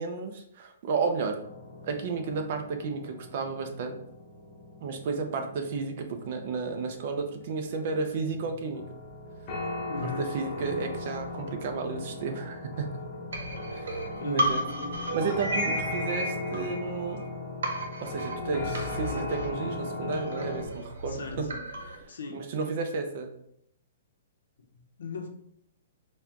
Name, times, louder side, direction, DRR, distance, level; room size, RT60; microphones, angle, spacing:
voice 1, 0.0-1.4 1.8-4.0 4.8-8.8 10.2-12.9 13.7-14.0 14.2-14.6 15.1-17.2 18.0-21.5 21.9-23.3, right 4 dB, 40° right, 5 dB, 0.6 m, -32 dB
sound 1, 1.4-20.6, left 2 dB, 25° left, 0.8 m, -38 dB
voice 2, 9.9-10.3 14.2-14.9 21.1-21.5 22.1-22.4 24.7-25.3, left 4 dB, 80° left, 3 dB, 0.8 m, -37 dB
sound 2, 13.3-17.3 17.6-22.0, right 1 dB, 85° right, 0.9 m, -34 dB
4.3 x 2.3 x 3.6 m, 0.74 s
hypercardioid pair, 170°, 0 cm